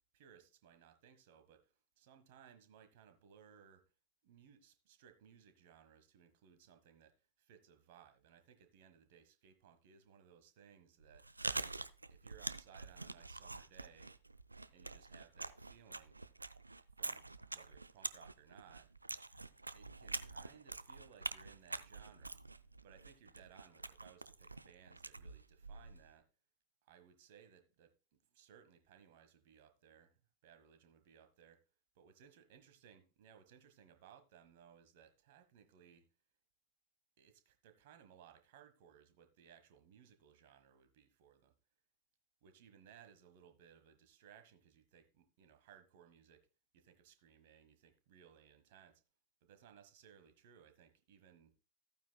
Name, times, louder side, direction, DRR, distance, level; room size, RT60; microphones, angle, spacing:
voice 1, 0.1-3.8 4.2-11.3 12.1-14.1 14.7-16.2 17.0-18.9 19.7-22.4 22.8-26.3 26.8-31.6 31.9-36.1 37.2-41.5 42.4-46.5 46.7-49.0 49.4-51.5, right 8 dB, 50° right, 1.4 m, -63 dB
Chewing mastication, 11.0-26.1, right 3 dB, 80° right, 0.4 m, -46 dB
14.0 x 9.1 x 2.2 m
figure-of-eight pair, 90°, 0 cm